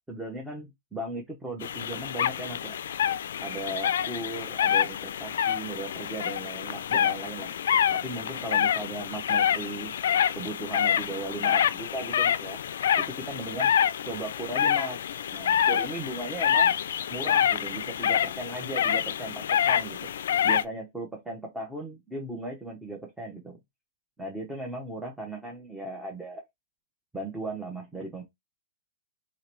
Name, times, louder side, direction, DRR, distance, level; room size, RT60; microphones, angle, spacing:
voice 1, 0.1-2.7 3.4-7.5 8.0-9.9 10.3-12.6 13.0-13.7 14.0-15.0 15.3-16.8 17.1-20.1 20.4-23.6 24.2-26.4 27.1-28.2, right 2 dB, 5° right, 0.9 m, -37 dB
sound 1, 1.6-20.6, left 9 dB, 75° left, 0.3 m, -27 dB
3.0 x 2.9 x 4.4 m
hypercardioid pair, 135°, 0 cm